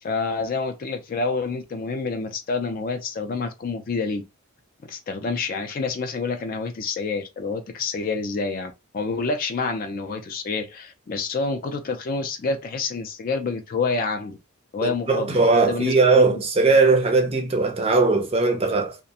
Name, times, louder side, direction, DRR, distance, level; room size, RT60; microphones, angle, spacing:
voice 1, 0.0-4.2 4.9-14.4 14.7-16.4, left 4 dB, 40° left, 0.3 m, -28 dB
voice 2, 14.8-19.0, right 3 dB, 25° right, 0.5 m, -19 dB
2.4 x 2.1 x 2.7 m
head